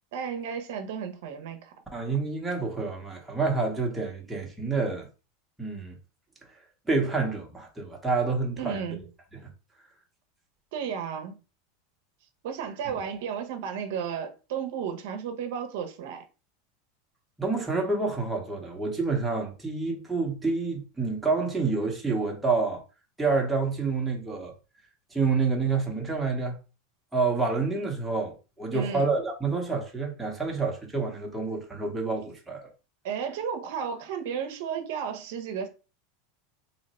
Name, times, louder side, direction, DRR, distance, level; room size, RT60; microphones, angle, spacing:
voice 1, 0.1-1.7 8.6-9.0 10.7-11.3 12.4-16.2 28.7-29.1 33.0-35.7, right 7 dB, 70° right, 0.7 m, -33 dB
voice 2, 1.9-5.1 5.6-6.0 6.9-8.8 9.3-9.5 17.4-22.8 23.2-24.5 25.1-26.6 27.1-32.7, right 4 dB, 5° right, 0.8 m, -28 dB
2.9 x 2.0 x 4.1 m
supercardioid pair, 135°, 0 cm